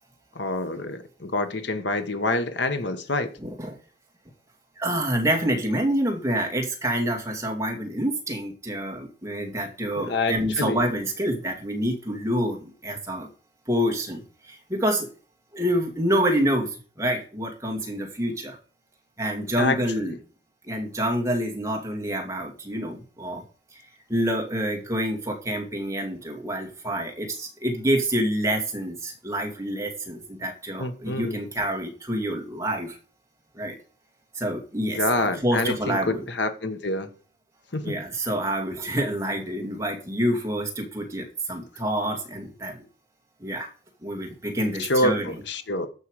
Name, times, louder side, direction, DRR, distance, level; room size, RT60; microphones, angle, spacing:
voice 1, 0.3-3.3 10.0-10.8 19.6-20.0 30.8-31.4 34.9-37.1 37.7-38.0 44.8-45.9, left 2 dB, 70° left, 1.4 m, -27 dB
voice 2, 3.4-3.8 4.8-13.3 13.7-15.1 15.5-18.6 19.2-20.1 20.6-23.4 23.7-23.8 24.1-33.0 33.6-33.8 34.4-36.2 37.8-42.8 43.4-43.7 44.0-45.4, right 1 dB, 15° right, 2.3 m, -27 dB
13.5 x 5.8 x 4.9 m
head